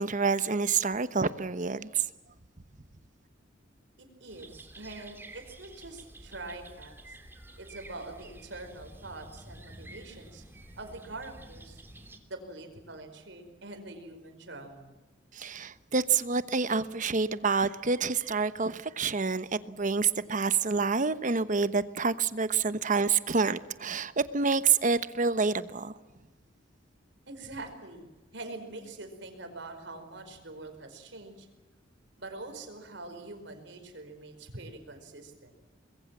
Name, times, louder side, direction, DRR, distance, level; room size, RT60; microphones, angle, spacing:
voice 1, 0.0-2.0 15.3-25.9, right 5 dB, 45° right, 13 dB, 1.1 m, -28 dB
voice 2, 4.0-7.2 7.6-10.4 10.8-11.8 12.3-14.9 27.3-28.1 28.3-31.5 32.2-35.6, right 2 dB, 65° right, 6 dB, 5.0 m, -44 dB
sound 1, 4.3-12.2, right 1 dB, 10° right, 2.7 m, -50 dB
25.0 x 22.0 x 7.5 m, 1.1 s
head